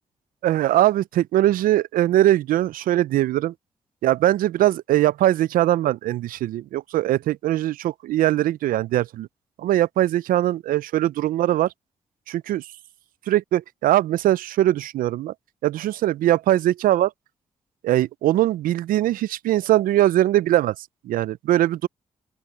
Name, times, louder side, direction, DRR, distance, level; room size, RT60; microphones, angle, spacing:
voice 1, 0.4-3.5 4.0-9.3 9.6-11.7 12.5-12.6 13.3-15.3 15.6-17.1 17.8-20.7 21.0-21.9, right 13 dB, 80° right, 0.6 m, -21 dB
open air
hypercardioid pair, 40°, 14 cm